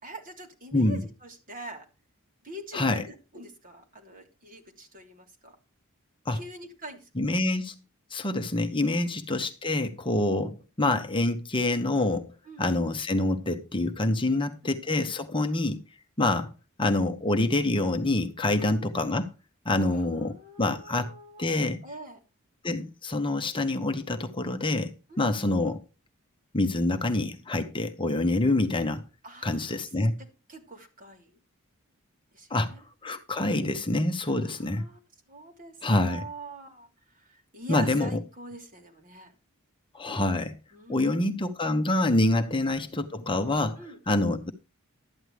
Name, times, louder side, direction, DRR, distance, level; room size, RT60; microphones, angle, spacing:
voice 1, 0.0-1.9 2.4-5.6 6.3-7.1 9.0-9.1 12.5-12.7 14.2-14.8 15.4-15.6 18.6-18.7 19.8-21.5 21.8-22.2 25.1-25.3 29.2-29.8 30.2-31.4 32.3-32.8 34.3-35.0 35.3-35.7 36.0-39.3 40.7-41.5 42.5-42.6 43.8-44.2, right 2 dB, 40° right, 3.1 m, -44 dB
voice 2, 2.7-3.0 6.3-6.4 7.2-7.7 8.1-12.3 12.6-15.8 16.2-16.5 16.8-19.3 19.6-20.3 20.6-21.1 21.4-21.8 22.6-25.8 26.5-29.0 29.4-30.2 32.5-32.7 33.0-34.9 35.8-36.3 37.7-38.2 39.9-40.6 40.9-43.8 44.1-44.5, left 2 dB, 25° left, 0.9 m, -26 dB
12.5 x 9.8 x 3.4 m
head